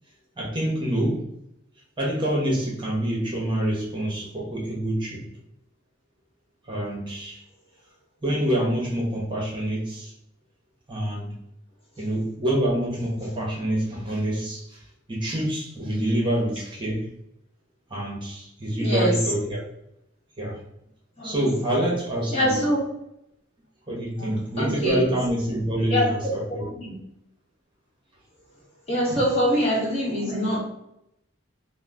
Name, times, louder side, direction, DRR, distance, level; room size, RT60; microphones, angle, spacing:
voice 1, 0.4-1.2 2.0-5.2 6.7-7.4 8.2-10.1 10.9-11.4 12.0-14.8 15.1-17.1 17.9-19.6 20.4-20.6 21.2-22.6 23.9-26.7, right 1 dB, 25° right, -4 dB, 0.9 m, -26 dB
voice 2, 18.8-19.2 21.2-21.4 22.3-22.8 24.2-25.1 25.9-26.1 26.8-26.9 28.9-30.6, equal, 30° left, -5 dB, 1.2 m, -24 dB
2.9 x 2.1 x 3.5 m, 0.79 s
head